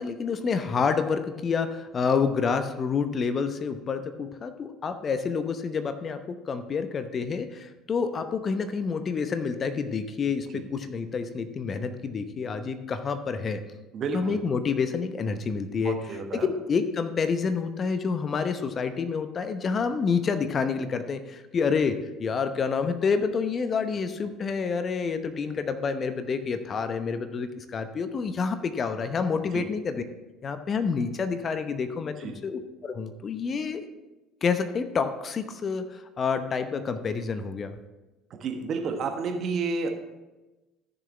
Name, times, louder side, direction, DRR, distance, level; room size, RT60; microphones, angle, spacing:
voice 1, 0.0-13.6 14.1-16.0 16.4-30.0 30.4-33.9 34.4-37.8, left 5 dB, 40° left, 9 dB, 0.8 m, -28 dB
voice 2, 13.9-14.4 15.8-16.5 29.5-29.6 32.2-32.3 38.3-39.9, right 4 dB, 50° right, 4 dB, 1.3 m, -31 dB
14.5 x 6.5 x 3.4 m, 1.1 s
figure-of-eight pair, 60°, 0 cm